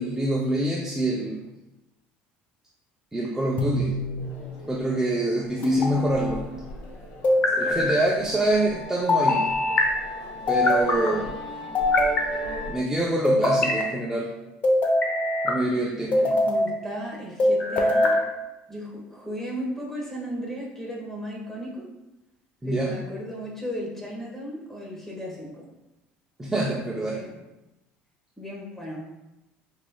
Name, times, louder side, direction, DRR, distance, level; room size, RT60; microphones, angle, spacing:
voice 1, 0.0-1.5 3.1-3.9 4.6-6.4 7.6-9.5 10.5-11.3 12.7-14.3 15.4-16.3 22.6-22.9 26.4-27.2, right 1 dB, 10° right, -3 dB, 0.5 m, -26 dB
sound 1, 3.6-4.3 5.6-6.4 7.2-8.0 9.1-9.9 10.5-11.1 11.7-12.6 13.2-13.9 14.6-15.6 16.1-16.7 17.4-18.2, left 1 dB, 40° left, 0.7 m, -22 dB
sound 2, 4.2-12.7, left 2 dB, 70° left, 0.9 m, -40 dB
voice 2, 16.2-18.1 18.7-21.9 22.7-25.5 27.1-27.4 28.4-29.1, equal, 10° left, -3 dB, 1.3 m, -35 dB
4.9 x 3.2 x 2.2 m, 0.97 s
supercardioid pair, 100°, 4 cm